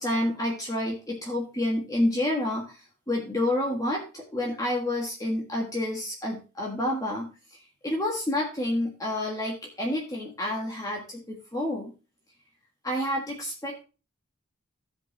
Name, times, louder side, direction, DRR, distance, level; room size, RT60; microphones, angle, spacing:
voice 1, 0.0-7.3 7.8-11.9 12.8-13.8, left 1 dB, 15° left, -1 dB, 1.5 m, -29 dB
15.5 x 5.3 x 3.2 m, 0.33 s
head